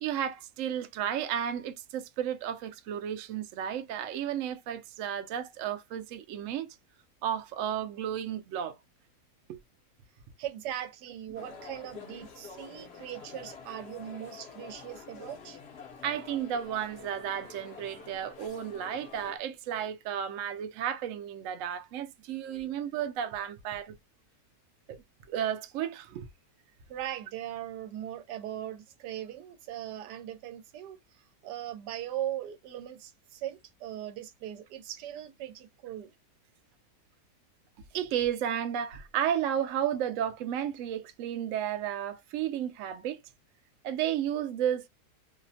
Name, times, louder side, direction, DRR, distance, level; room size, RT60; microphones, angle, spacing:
voice 1, 0.0-6.8 7.2-8.8 9.5-9.6 16.0-23.9 24.9-25.0 25.3-26.3 37.9-43.2 43.8-44.9, right 9 dB, 70° right, 0.8 m, -33 dB
voice 2, 10.4-15.6 26.9-36.1, right 12 dB, 90° right, 1.2 m, -39 dB
sound 1, 11.3-19.4, left 5 dB, 60° left, 0.7 m, -48 dB
2.9 x 2.0 x 2.6 m
omnidirectional pair, 1.7 m